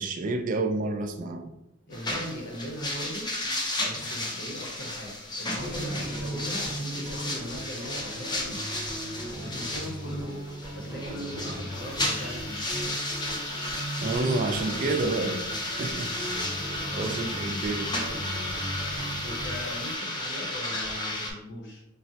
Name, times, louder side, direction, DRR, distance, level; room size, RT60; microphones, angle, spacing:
voice 1, 0.0-1.5 14.0-16.2 16.6-18.0, right 3 dB, 40° right, 0.3 m, -30 dB
voice 2, 1.9-3.3 3.8-8.6 9.3-10.4 10.7-12.6 16.8-17.2 19.2-21.8, equal, 60° left, 0.8 m, -39 dB
sound 1, 1.9-21.3, left 1 dB, 20° left, 0.5 m, -33 dB
sound 2, 5.6-19.7, right 1 dB, 15° right, 0.8 m, -37 dB
sound 3, 11.7-19.9, left 1 dB, 90° left, 1.4 m, -47 dB
3.7 x 2.1 x 2.7 m
head